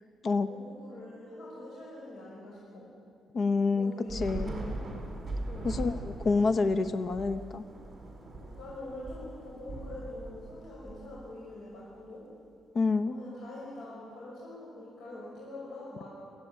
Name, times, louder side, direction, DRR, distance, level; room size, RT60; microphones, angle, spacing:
voice 1, 0.5-2.9 3.7-4.7 5.5-5.8 8.6-12.2 13.0-16.1, left 1 dB, 70° left, -6 dB, 6.2 m, -44 dB
voice 2, 3.3-4.6 5.6-7.6 12.7-13.2, left 4 dB, 45° left, 10 dB, 0.9 m, -28 dB
Thunder / Rain, 4.1-11.6, right 2 dB, 15° right, 4.8 m, -40 dB
23.5 x 16.0 x 9.0 m, 2.4 s
cardioid pair, 135°, 0 cm